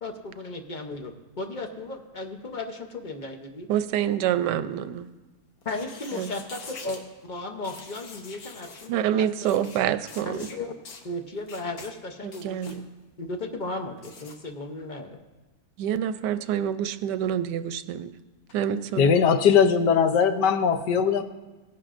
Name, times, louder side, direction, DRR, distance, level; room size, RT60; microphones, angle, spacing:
voice 1, 0.0-3.7 5.6-9.6 10.3-10.7 11.0-12.8 13.2-15.2, left 2 dB, 45° left, 4 dB, 0.6 m, -35 dB
voice 2, 3.7-5.1 6.2-6.3 8.9-10.4 12.2-12.8 15.8-18.1 18.5-19.1, right 10 dB, 90° right, 12 dB, 1.2 m, -27 dB
sound 1, 5.6-7.0 7.6-8.9 9.4-9.8 10.1-10.6 10.9-11.0 11.5-11.9 12.3-12.8 14.0-14.4, left 4 dB, 60° left, 1.5 m, -44 dB
voice 3, 19.0-21.2, left 6 dB, 85° left, 8 dB, 1.4 m, -20 dB
18.0 x 10.5 x 2.5 m, 1.2 s
omnidirectional pair, 1.8 m